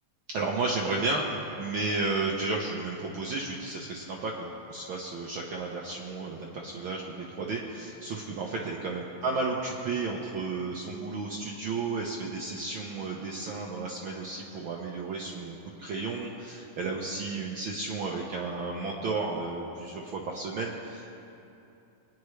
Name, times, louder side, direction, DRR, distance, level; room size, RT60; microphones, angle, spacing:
voice 1, 0.3-21.2, right 3 dB, 80° right, -2 dB, 1.1 m, -33 dB
24.5 x 9.4 x 3.2 m, 2.8 s
omnidirectional pair, 3.4 m